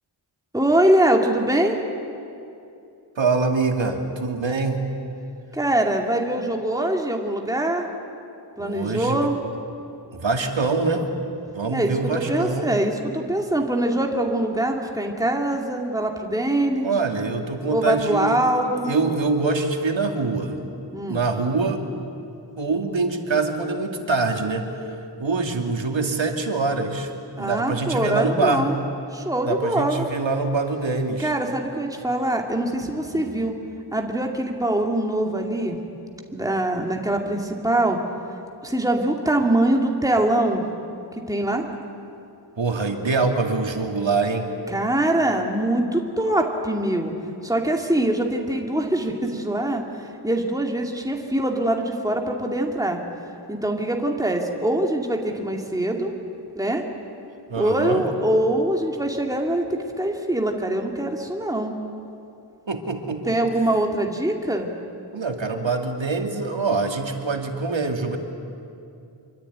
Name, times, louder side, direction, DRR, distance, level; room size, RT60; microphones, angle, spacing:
voice 1, 0.5-1.8 5.5-7.9 8.6-9.3 11.7-16.9 17.7-18.9 20.9-21.2 27.4-28.7 29.1-30.1 31.2-33.5 33.9-35.8 36.3-38.0 38.6-40.6 41.3-41.6 44.7-47.1 47.4-53.0 53.5-56.1 56.6-56.8 57.6-61.7 63.3-64.7, right 1 dB, 10° right, 1 dB, 2.5 m, -23 dB
voice 2, 3.2-4.8 8.6-9.3 10.1-11.1 11.5-12.7 16.8-18.4 18.8-20.6 21.1-21.8 22.6-24.9 25.2-27.1 27.4-28.7 29.4-31.3 33.1-33.3 42.6-44.5 57.5-58.1 62.7-63.4 65.1-68.2, right 3 dB, 90° right, 3 dB, 2.6 m, -24 dB
25.5 x 24.0 x 9.5 m, 2.6 s
wide cardioid pair, 75°, 44 cm